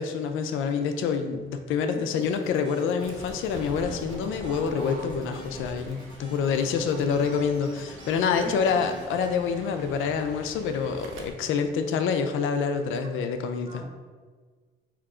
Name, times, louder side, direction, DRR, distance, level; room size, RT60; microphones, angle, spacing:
voice 1, 0.0-13.8, left 6 dB, 85° left, 7 dB, 0.4 m, -27 dB
sound 1, 2.2-9.3, equal, 25° left, 1.2 m, -47 dB
Fowl / Bird, 3.0-11.3, right 2 dB, 85° right, 0.6 m, -44 dB
sound 2, 3.5-5.5, left 2 dB, 65° left, 0.8 m, -45 dB
voice 2, 8.1-9.0 13.0-13.1 13.7-13.9, right 2 dB, 25° right, 0 dB, 0.9 m, -40 dB
3.6 x 2.8 x 4.7 m, 1.5 s
cardioid pair, 90°, 20 cm